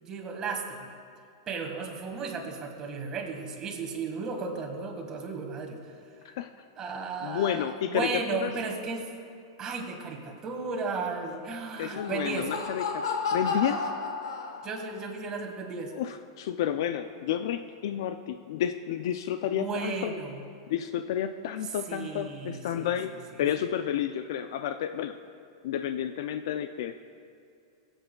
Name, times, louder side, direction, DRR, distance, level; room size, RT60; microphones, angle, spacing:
voice 1, 0.0-0.9 1.5-5.9 6.8-9.0 9.6-12.5 14.6-15.9 19.5-20.4 21.9-22.9 23.4-23.5, right 4 dB, 25° right, 1 dB, 1.6 m, -34 dB
voice 2, 7.2-8.5 11.8-13.0 13.3-13.9 15.9-20.1 20.7-23.1 23.4-25.2 25.6-26.9, left 10 dB, 65° left, 9 dB, 0.4 m, -31 dB
Laughter, 11.8-15.0, left 4 dB, 85° left, 1.2 m, -32 dB
23.0 x 7.9 x 2.3 m, 2.4 s
hypercardioid pair, 135°, 2 cm